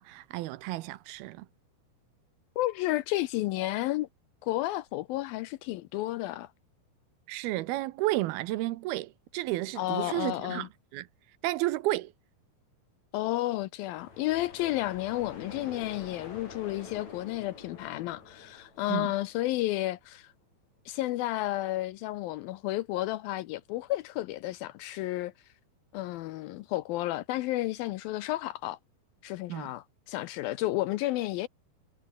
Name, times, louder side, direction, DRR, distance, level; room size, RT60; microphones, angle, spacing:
voice 1, 0.0-1.5 7.3-11.1 11.4-12.1 18.9-19.1 29.5-29.7, right 17 dB, 80° right, 2.5 m, -32 dB
voice 2, 2.6-4.1 4.4-6.5 9.8-10.7 13.1-20.3 20.9-25.3 25.9-28.8 29.2-31.5, left 16 dB, 80° left, 2.2 m, -32 dB
sound 1, 13.9-19.7, left 4 dB, 45° left, 6.8 m, -47 dB
omnidirectional pair, 4.7 m